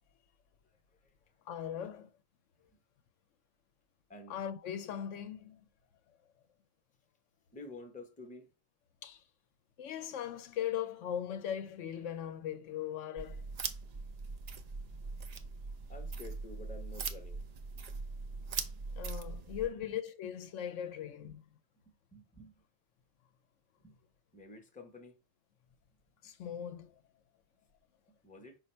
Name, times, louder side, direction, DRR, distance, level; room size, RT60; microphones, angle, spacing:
voice 1, 1.5-2.1 4.3-5.6 9.0-9.2 9.8-13.4 19.0-21.4 26.2-27.0, left 10 dB, 75° left, 0.9 m, -39 dB
voice 2, 7.5-8.5 15.9-17.4 19.7-19.8 22.1-22.6 23.8-24.0 24.3-25.2 28.2-28.6, left 2 dB, 10° left, 0.6 m, -50 dB
sound 1, 13.2-19.7, right 4 dB, 60° right, 0.4 m, -41 dB
5.0 x 2.5 x 4.3 m
omnidirectional pair, 1.3 m